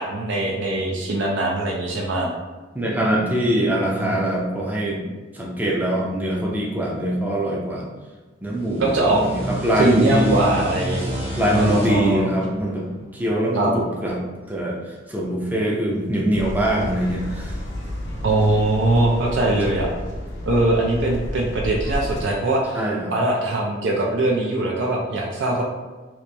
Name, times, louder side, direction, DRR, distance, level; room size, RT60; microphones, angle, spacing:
voice 1, 0.0-2.3 4.0-4.1 8.8-9.2 9.8-12.3 13.5-13.7 18.2-19.9 20.4-22.8 23.1-25.6, right 2 dB, 65° right, -2 dB, 0.4 m, -21 dB
voice 2, 2.7-5.0 5.3-7.8 8.4-10.5 11.4-12.9 13.1-14.2 14.5-14.8 15.1-17.5 22.7-23.1, right 1 dB, 10° right, -4 dB, 0.5 m, -23 dB
sound 1, 8.5-13.8, right 1 dB, 30° right, 0.9 m, -31 dB
sound 2, 16.3-22.3, left 1 dB, 65° left, 0.7 m, -31 dB
3.0 x 2.9 x 3.3 m, 1.3 s
head